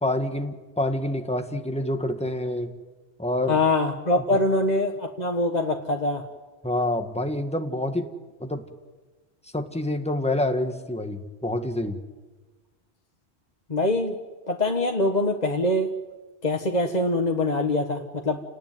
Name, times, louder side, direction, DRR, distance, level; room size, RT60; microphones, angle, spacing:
voice 1, 0.0-2.7 3.2-3.6 6.6-8.1 8.4-8.6 9.5-12.0, left 1 dB, 5° left, 6 dB, 1.7 m, -27 dB
voice 2, 3.5-6.2 13.7-14.2 14.5-15.9 16.4-18.4, left 2 dB, 40° left, 3 dB, 1.5 m, -24 dB
29.5 x 19.0 x 9.4 m, 1.3 s
omnidirectional pair, 1.1 m